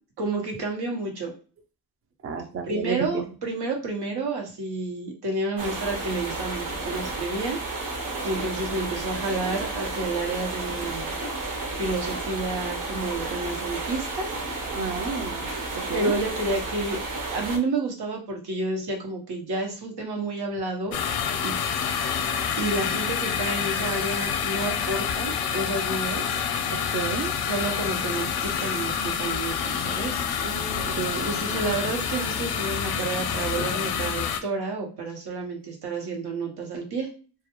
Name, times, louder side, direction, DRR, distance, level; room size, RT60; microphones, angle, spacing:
voice 1, 0.2-1.3 2.7-7.6 8.2-11.1 11.7-14.3 15.9-17.0 17.3-21.0 21.4-21.5 22.6-26.4 27.5-30.2 31.1-37.1, right 2 dB, 85° right, 1 dB, 0.9 m, -30 dB
voice 2, 2.2-3.2 14.8-15.5 15.9-16.1 26.9-27.3 30.4-31.4, right 5 dB, 35° right, 6 dB, 0.4 m, -31 dB
sound 1, 5.6-17.6, right 3 dB, 55° right, 0.8 m, -32 dB
sound 2, 20.9-34.4, left 7 dB, 70° left, 0.5 m, -28 dB
2.2 x 2.2 x 2.9 m, 0.37 s
wide cardioid pair, 110°, 38 cm